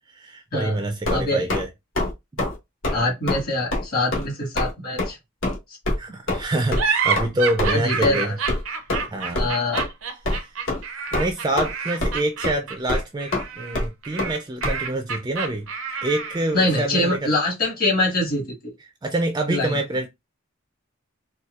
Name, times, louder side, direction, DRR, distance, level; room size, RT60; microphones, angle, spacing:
voice 1, 0.1-1.7 6.0-8.3 9.1-9.5 10.4-10.5 11.1-15.7 16.0-17.3 19.0-20.1, right 1 dB, 20° right, 0.4 m, -26 dB
sound 1, 1.0-1.6 2.0-2.1 2.4-2.6 2.8-3.0 3.3-3.4 3.7-3.9 4.1-4.3 4.6-4.7 5.0-5.1 5.4-5.6 5.9-6.0 6.3-6.4 6.7-6.8 7.2-7.3 7.6-7.7 8.0-8.1 8.5-8.6 8.9-9.1 9.4-9.5 9.8-9.9 10.3-10.4 10.7-10.8 11.1-11.7 12.0-12.2 12.4-12.5 12.9-13.0 13.3-13.4 13.7-13.9 14.2-14.3 14.6-14.8, left 1 dB, 70° left, 1.2 m, -24 dB
voice 2, 1.1-1.4 2.9-5.2 7.7-8.3 9.4-9.8 16.5-18.4 19.5-19.8, left 2 dB, 50° left, 1.5 m, -23 dB
sound 2, 6.8-16.6, right 5 dB, 80° right, 0.6 m, -28 dB
4.1 x 2.3 x 2.4 m
head